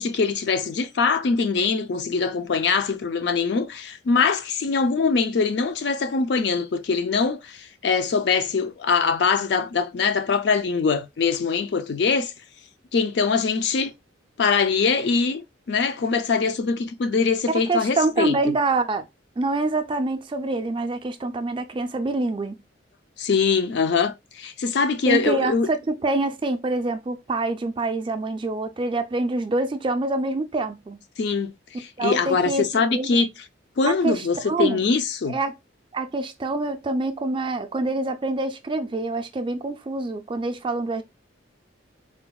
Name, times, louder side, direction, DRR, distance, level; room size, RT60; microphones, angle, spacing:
voice 1, 0.0-12.3 12.9-13.9 14.4-18.5 23.2-25.7 31.2-33.3 33.8-35.4, left 5 dB, 60° left, 0.4 m, -23 dB
voice 2, 17.5-19.0 19.4-22.6 25.1-31.0 32.0-33.3 33.9-34.8 35.3-35.5 35.9-41.0, right 2 dB, 25° right, 0.3 m, -26 dB
3.7 x 2.0 x 2.2 m
head